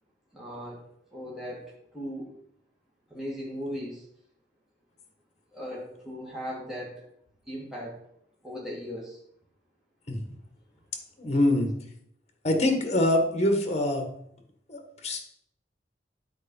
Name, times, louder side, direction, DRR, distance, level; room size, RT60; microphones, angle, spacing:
voice 1, 0.3-0.8 1.1-1.6 1.9-2.3 3.1-4.0 5.5-6.9 7.5-8.0 8.4-9.2, equal, 5° right, -6 dB, 2.1 m, -37 dB
voice 2, 11.2-11.7 12.4-14.1 14.7-15.2, left 1 dB, 40° left, 4 dB, 1.5 m, -24 dB
9.7 x 4.5 x 5.5 m, 0.71 s
head